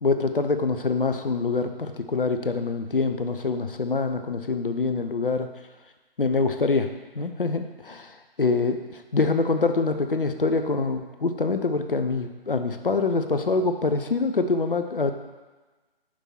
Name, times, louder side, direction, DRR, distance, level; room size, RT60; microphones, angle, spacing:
voice 1, 0.0-5.5 6.2-6.9 7.1-15.1, left 4 dB, 65° left, 7 dB, 0.6 m, -25 dB
6.2 x 4.7 x 4.3 m, 1.2 s
figure-of-eight pair, 150°, 29 cm